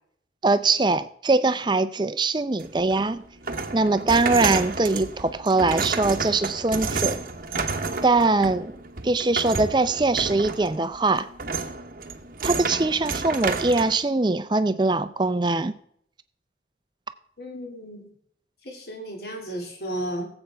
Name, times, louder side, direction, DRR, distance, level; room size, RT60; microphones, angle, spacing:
voice 1, 0.4-3.2 3.7-7.2 8.0-8.8 9.0-11.3 12.4-15.7, right 3 dB, 25° right, 12 dB, 0.5 m, -22 dB
sound 1, 2.6-13.9, right 4 dB, 50° right, 0.9 m, -31 dB
voice 2, 17.4-18.1 18.6-20.2, right 1 dB, 60° left, 1 dB, 2.4 m, -34 dB
17.0 x 8.0 x 3.4 m, 0.66 s
head